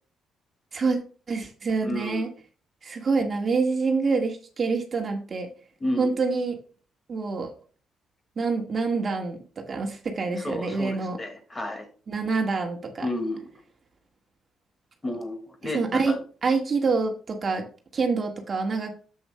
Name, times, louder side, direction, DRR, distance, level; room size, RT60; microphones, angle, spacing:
voice 1, 1.3-2.3 2.8-5.5 6.0-6.6 7.1-7.5 8.4-11.2 12.1-13.1 15.7-16.2 16.4-17.7 17.9-18.9, right 4 dB, 40° right, 3 dB, 1.6 m, -26 dB
voice 2, 1.8-2.3 5.8-6.1 10.3-11.9 13.0-13.5 15.0-16.2, left 1 dB, 25° left, 5 dB, 1.9 m, -32 dB
10.5 x 7.9 x 2.2 m, 0.39 s
cardioid pair, 90°, 0 cm